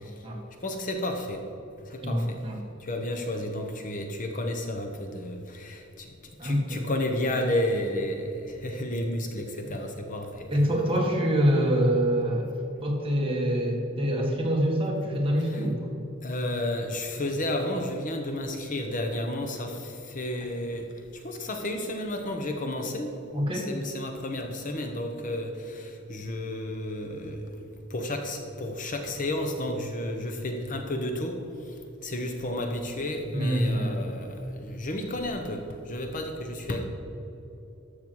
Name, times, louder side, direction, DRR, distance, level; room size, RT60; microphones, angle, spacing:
voice 1, 0.6-1.4 1.9-2.4 2.8-6.1 6.4-10.5 15.5-15.6 16.2-23.2 23.5-27.6 27.9-31.4 32.0-36.8, left 1 dB, 40° left, 4 dB, 0.9 m, -32 dB
voice 2, 2.0-2.6 6.4-6.8 10.5-12.5 12.8-15.9 23.3-23.7 33.3-33.9, equal, 25° right, -1 dB, 1.8 m, -25 dB
13.0 x 6.7 x 4.7 m, 2.9 s
head